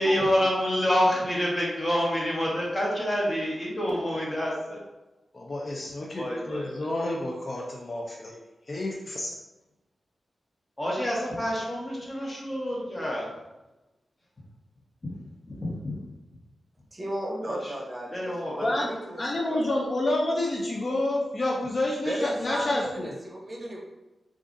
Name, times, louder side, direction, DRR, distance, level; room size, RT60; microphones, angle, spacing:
voice 1, 0.0-4.8 6.1-6.9 10.8-13.3 15.0-15.2 15.5-16.0 17.4-17.7 18.1-18.8, equal, 30° left, -4 dB, 1.3 m, -28 dB
voice 2, 5.3-8.4 8.7-9.3 18.6-23.2, left 1 dB, 45° left, -2 dB, 0.5 m, -29 dB
voice 3, 16.9-19.2 19.5-19.6 22.0-23.8, equal, 30° right, -1 dB, 0.8 m, -35 dB
4.6 x 2.4 x 2.6 m, 1.0 s
cardioid pair, 70°, 0 cm